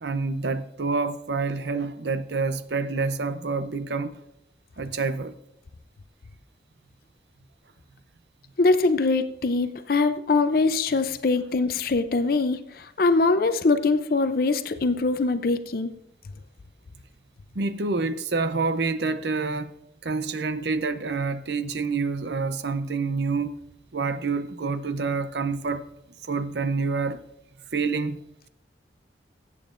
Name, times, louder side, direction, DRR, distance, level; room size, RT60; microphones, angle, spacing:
voice 1, 0.0-4.2 4.8-5.3 17.5-19.7 20.0-23.5 23.9-25.9 26.2-27.2 27.7-28.2, right 4 dB, 65° right, 0.6 m, -27 dB
voice 2, 8.6-15.9, left 3 dB, 50° left, 0.5 m, -23 dB
21.0 x 8.5 x 2.5 m
head